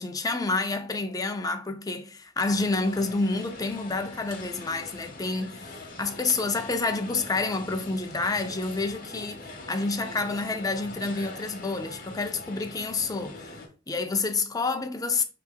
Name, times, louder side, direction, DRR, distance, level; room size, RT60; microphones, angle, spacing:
voice 1, 0.0-13.6 13.9-15.2, left 3 dB, 20° left, 0.5 m, -29 dB
sound 1, 2.4-13.7, left 2 dB, 50° left, 1.0 m, -43 dB
5.0 x 2.9 x 3.6 m
head